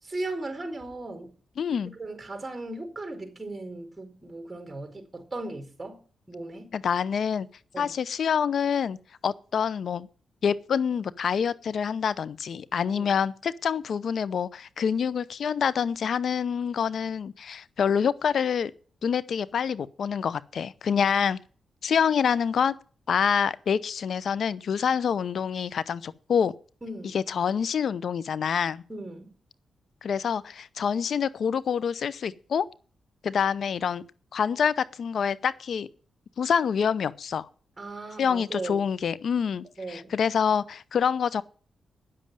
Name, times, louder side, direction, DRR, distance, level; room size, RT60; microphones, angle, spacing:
voice 1, 0.0-1.3 2.0-6.0 6.3-6.7 7.7-7.9 13.0-13.1 26.8-27.2 28.9-29.3 37.8-38.8 39.8-40.1, right 2 dB, 20° right, 4.6 m, -37 dB
voice 2, 1.6-1.9 6.7-7.5 7.8-9.0 9.2-10.1 10.4-18.7 19.0-21.4 21.8-22.7 23.1-26.5 27.1-28.8 30.0-32.7 33.2-34.0 34.3-35.9 36.4-37.5 38.2-41.4, left 7 dB, 70° left, 0.7 m, -26 dB
9.7 x 7.6 x 9.0 m
supercardioid pair, 50°, 0 cm